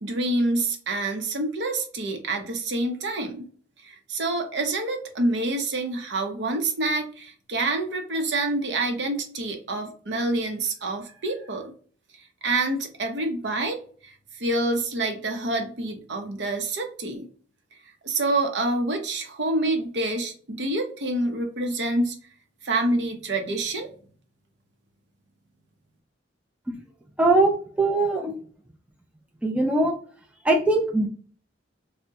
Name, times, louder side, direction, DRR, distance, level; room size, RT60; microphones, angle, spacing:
voice 1, 0.0-3.5 3.8-11.7 12.4-17.3 18.0-22.1 22.6-23.9, right 2 dB, 65° right, 4 dB, 0.7 m, -27 dB
voice 2, 27.2-27.5 27.8-28.3 29.4-29.9 30.4-31.1, right 2 dB, 5° right, 2 dB, 0.4 m, -21 dB
3.4 x 2.1 x 2.8 m, 0.44 s
head